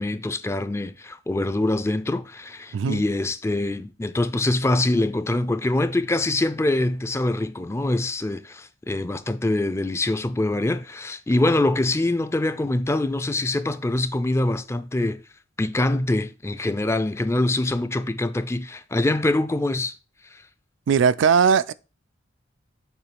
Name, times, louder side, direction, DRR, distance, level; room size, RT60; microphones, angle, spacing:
voice 1, 0.0-15.2 15.6-19.9 20.3-20.4, left 2 dB, 15° left, 0.3 m, -24 dB
voice 2, 20.9-21.7, right 6 dB, 75° right, 0.3 m, -19 dB
6.8 x 3.1 x 5.9 m
head